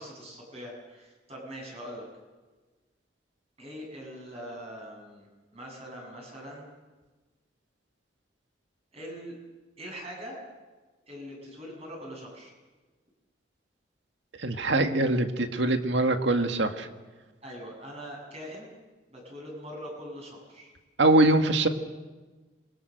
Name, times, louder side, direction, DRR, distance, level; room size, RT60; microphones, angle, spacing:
voice 1, 0.0-2.1 3.6-5.3 5.5-6.7 8.9-9.4 9.8-10.4 11.1-12.5 17.4-18.7 19.1-20.7, equal, 35° right, 0 dB, 7.9 m, -42 dB
voice 2, 14.4-16.9 21.0-21.7, right 2 dB, 75° right, 6 dB, 1.8 m, -23 dB
27.5 x 22.5 x 6.7 m, 1.3 s
head